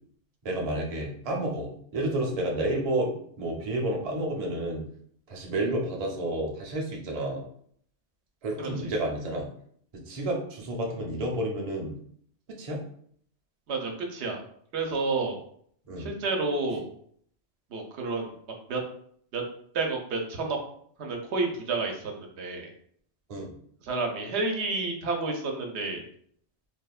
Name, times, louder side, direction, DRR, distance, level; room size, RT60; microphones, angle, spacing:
voice 1, 0.4-4.8 5.3-7.4 8.4-9.5 9.9-11.9 12.6-12.8 15.9-16.1 23.3-23.5, right 1 dB, 45° right, -1 dB, 0.5 m, -30 dB
voice 2, 8.6-8.9 13.7-14.4 14.7-15.4 16.0-16.9 17.7-18.3 18.7-18.8 19.3-19.4 19.7-20.6 21.0-22.7 23.8-26.0, right 3 dB, 85° right, 1 dB, 0.9 m, -30 dB
3.1 x 2.0 x 2.3 m, 0.63 s
omnidirectional pair, 1.1 m